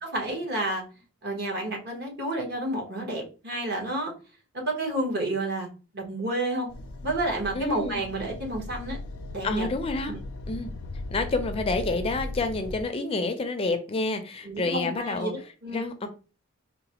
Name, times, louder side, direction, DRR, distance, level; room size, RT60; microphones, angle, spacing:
voice 1, 0.0-0.8 1.2-4.1 4.5-5.7 5.9-6.7 7.0-9.0 9.3-9.7 10.1-10.2 14.4-15.8, right 1 dB, 50° right, 1.1 m, -30 dB
sound 1, 6.7-12.8, left 2 dB, 85° left, 0.5 m, -38 dB
voice 2, 7.5-8.0 9.4-10.1 10.5-10.7 11.1-15.3 15.7-16.1, left 3 dB, 25° left, 0.4 m, -28 dB
4.0 x 2.1 x 2.9 m
head